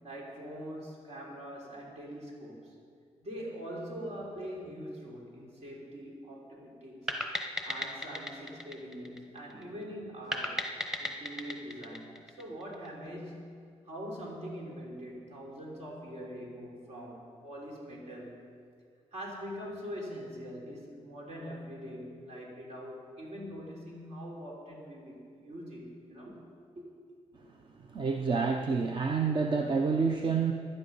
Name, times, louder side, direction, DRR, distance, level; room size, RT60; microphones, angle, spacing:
voice 1, 0.0-2.8 3.2-7.1 7.4-18.4 19.1-26.4 26.8-26.9, equal, 65° right, -2 dB, 3.6 m, -43 dB
sound 1, 7.1-9.6 10.3-12.9, left 1 dB, 5° right, 1.0 m, -36 dB
voice 2, 27.9-30.5, right 5 dB, 45° right, 4 dB, 0.7 m, -28 dB
16.5 x 11.5 x 5.5 m, 2.2 s
wide cardioid pair, 175°, 12 cm